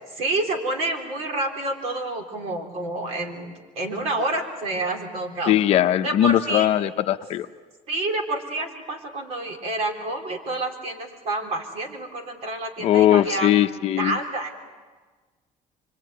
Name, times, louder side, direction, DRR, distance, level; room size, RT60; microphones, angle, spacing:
voice 1, 0.2-5.6 6.0-6.7 7.9-13.5 13.8-14.7, right 2 dB, 50° right, 3 dB, 3.8 m, -28 dB
voice 2, 5.5-7.5 12.8-14.2, left 12 dB, 50° left, 8 dB, 0.8 m, -20 dB
25.5 x 23.5 x 9.4 m, 1.4 s
cardioid pair, 180°, 13 cm